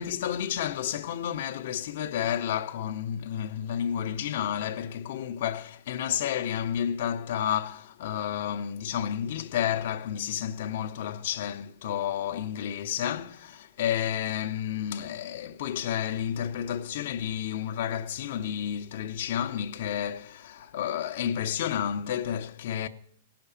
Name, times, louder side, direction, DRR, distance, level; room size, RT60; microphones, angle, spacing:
voice 1, 0.0-22.9, left 9 dB, 65° left, 0.7 m, -31 dB
17.5 x 5.9 x 7.0 m
hypercardioid pair, 135°, 0 cm